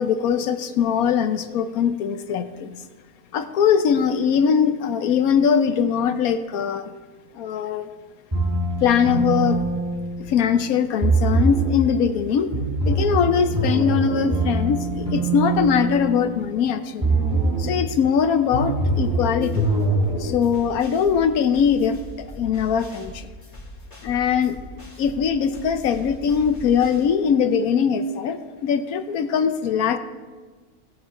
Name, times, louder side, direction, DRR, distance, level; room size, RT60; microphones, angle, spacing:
voice 1, 0.0-2.8 3.3-6.9 7.3-7.9 8.8-9.6 10.3-12.5 12.9-17.0 17.6-19.7 20.2-23.3 24.0-24.6 25.0-30.0, left 7 dB, 80° left, 10 dB, 1.2 m, -21 dB
sound 1, 8.3-10.6 11.0-11.8 12.5-16.6 17.0-17.8 18.5-20.3, right 2 dB, 20° right, 4.0 m, -23 dB
sound 2, 19.0-27.0, left 1 dB, 25° left, 3.5 m, -41 dB
18.0 x 8.9 x 3.7 m, 1.4 s
omnidirectional pair, 1.5 m